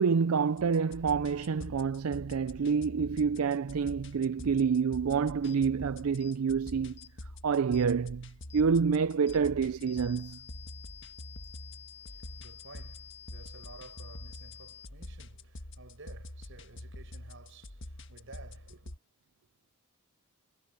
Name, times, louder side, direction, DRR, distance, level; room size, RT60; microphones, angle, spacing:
voice 1, 0.0-7.0 7.4-10.4, right 6 dB, 85° right, 0.5 m, -28 dB
sound 1, 0.6-19.0, left 1 dB, 60° left, 1.5 m, -46 dB
sound 2, 6.2-6.4 7.0-7.1 7.7-7.9 8.5-8.7 9.3-9.4 9.9-14.9, left 9 dB, 30° left, 1.1 m, -51 dB
voice 2, 11.9-19.0, right 3 dB, 65° right, 5.8 m, -53 dB
head